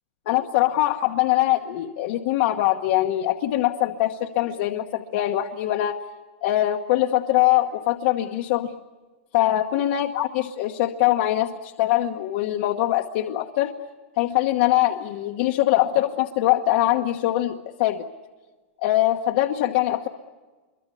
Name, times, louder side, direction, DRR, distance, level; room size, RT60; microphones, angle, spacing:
voice 1, 0.3-6.0 6.4-8.7 9.3-13.7 14.2-18.0 18.8-20.1, left 14 dB, 45° left, 3 dB, 1.1 m, -22 dB
26.0 x 23.0 x 8.3 m, 1.3 s
supercardioid pair, 170°, 7 cm